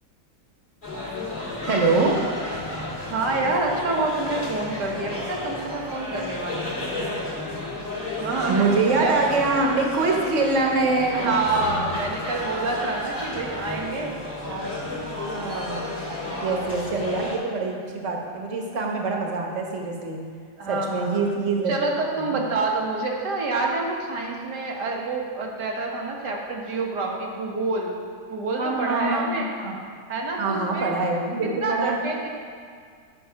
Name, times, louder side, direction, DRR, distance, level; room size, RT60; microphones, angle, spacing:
sound 1, 0.8-17.4, left 2 dB, 30° left, 2.0 m, -32 dB
voice 1, 1.6-2.2 8.5-11.3 14.5-15.9 16.4-20.2 20.7-21.8 22.2-22.5 28.6-29.8 30.4-32.0, right 3 dB, 50° right, 1 dB, 1.5 m, -25 dB
voice 2, 3.1-6.9 8.2-9.2 10.1-10.2 11.1-14.1 16.1-16.6 20.6-21.2 21.7-27.9 28.3-29.5 30.1-31.0 31.6-32.3, right 3 dB, 90° right, -1 dB, 1.9 m, -27 dB
10.0 x 5.9 x 5.7 m, 2.1 s
omnidirectional pair, 1.7 m